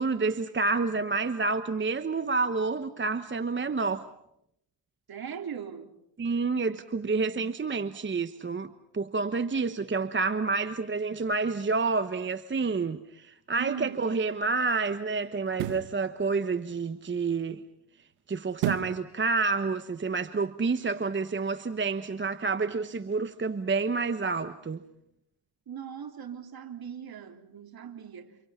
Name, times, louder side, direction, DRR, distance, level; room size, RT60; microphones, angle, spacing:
voice 1, 0.0-4.1 6.2-17.6 18.3-24.8, right 4 dB, 25° right, 1.1 m, -29 dB
voice 2, 5.1-5.9 13.6-14.1 25.7-28.4, right 8 dB, 45° right, 3.5 m, -39 dB
sound 1, 13.6-13.8 15.5-16.0 18.6-19.0 19.5-19.6, right 15 dB, 85° right, 1.4 m, -31 dB
30.0 x 28.0 x 5.8 m
supercardioid pair, 80°, 49 cm